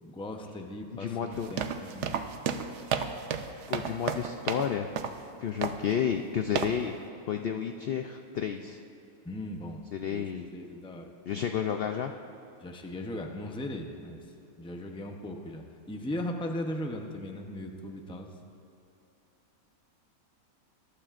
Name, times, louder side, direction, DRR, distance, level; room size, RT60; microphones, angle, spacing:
voice 1, 0.0-2.2 9.2-9.8 10.1-11.1 12.6-14.2 14.6-18.3, left 1 dB, 5° left, 3 dB, 0.4 m, -38 dB
voice 2, 0.9-1.5 3.7-4.9 5.4-6.9 7.3-8.8 9.9-10.5 11.3-12.1, left 8 dB, 80° left, 5 dB, 0.5 m, -31 dB
sound 1, 1.3-4.7 5.0-5.2 5.6-5.9 6.6-6.8, right 7 dB, 60° right, 0.8 m, -32 dB
21.5 x 12.0 x 2.5 m, 2.8 s
omnidirectional pair, 1.6 m